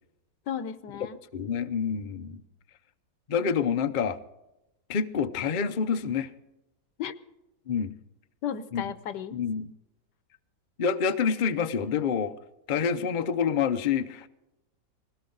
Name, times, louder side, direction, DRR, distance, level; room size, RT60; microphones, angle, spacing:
voice 1, 0.5-1.2 7.0-7.1 8.4-9.3, left 9 dB, 85° left, 13 dB, 1.5 m, -34 dB
voice 2, 1.3-2.4 3.3-4.2 4.9-6.3 7.7-7.9 8.7-8.8 9.3-9.7 10.8-12.3 12.7-14.3, left 6 dB, 50° left, 10 dB, 0.6 m, -27 dB
20.0 x 17.5 x 3.9 m, 0.93 s
omnidirectional pair, 1.8 m